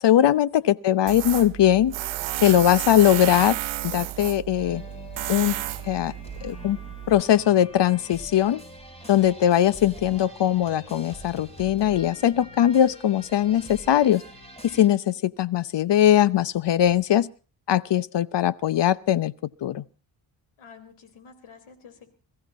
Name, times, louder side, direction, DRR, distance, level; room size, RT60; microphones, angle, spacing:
voice 1, 0.0-1.9 2.4-3.6 3.8-4.8 5.3-5.6 5.9-6.1 6.4-6.8 7.1-8.6 9.1-14.2 14.6-17.3 17.7-19.3 19.6-19.8, left 11 dB, 60° left, 0.8 m, -20 dB
Tools, 1.1-7.2, right 15 dB, 70° right, 0.7 m, -32 dB
sound 1, 4.6-14.9, left 1 dB, 10° left, 7.6 m, -44 dB
voice 2, 20.6-22.1, left 6 dB, 80° left, 3.7 m, -49 dB
22.5 x 15.0 x 4.2 m
cardioid pair, 60°, 48 cm